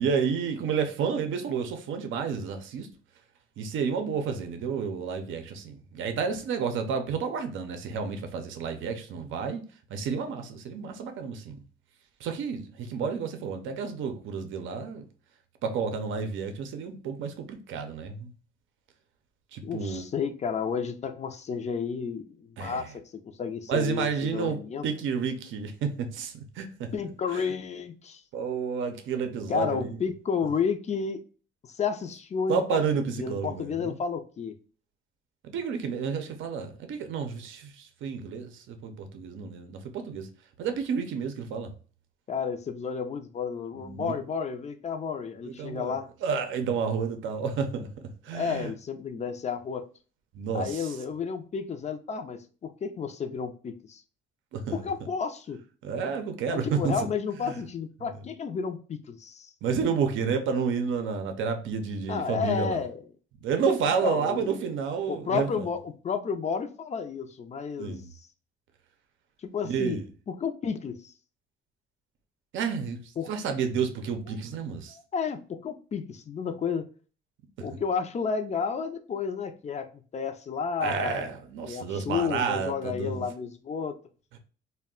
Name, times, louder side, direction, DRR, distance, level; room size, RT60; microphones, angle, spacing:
voice 1, 0.0-2.9 3.6-9.6 9.9-11.6 12.2-15.0 15.6-18.3 19.5-20.0 22.6-22.9 23.7-26.9 27.3-27.5 28.3-30.0 32.5-34.0 35.4-40.3 40.6-41.7 43.8-44.1 45.4-46.0 46.2-47.9 48.2-48.7 50.3-50.9 54.5-54.8 55.8-56.9 57.5-57.6 59.6-62.8 63.4-65.7 67.8-68.1 69.6-70.1 72.5-75.0 80.8-83.2, right 6 dB, 75° right, 0.5 m, -30 dB
voice 2, 19.6-22.9 23.2-24.8 26.9-28.2 29.5-31.2 31.6-34.5 42.3-46.1 48.3-49.8 50.5-54.0 54.7-55.6 56.5-59.5 62.1-63.0 64.0-64.6 65.1-68.0 69.4-70.0 70.3-71.1 73.2-73.3 75.1-76.9 77.6-81.3 81.7-84.0, left 6 dB, 35° left, 0.4 m, -31 dB
2.3 x 2.1 x 3.6 m
cardioid pair, 90°, 20 cm